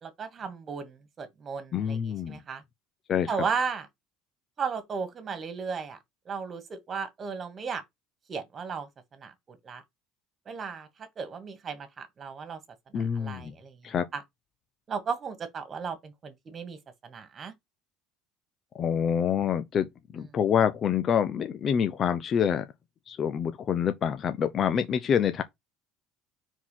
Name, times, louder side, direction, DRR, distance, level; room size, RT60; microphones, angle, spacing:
voice 1, 0.0-2.6 3.3-3.9 4.6-6.0 6.3-7.8 8.3-8.9 9.1-9.8 10.5-10.9 11.2-12.6 12.9-14.2 14.9-16.8 17.0-17.5, right 5 dB, 35° right, 2.0 m, -35 dB
voice 2, 1.7-2.4 3.1-3.4 12.9-13.5 13.8-14.1 18.8-19.9 20.1-22.6 23.1-25.4, left 8 dB, 40° left, 0.8 m, -26 dB
4.8 x 4.0 x 5.7 m
supercardioid pair, 105°, 0 cm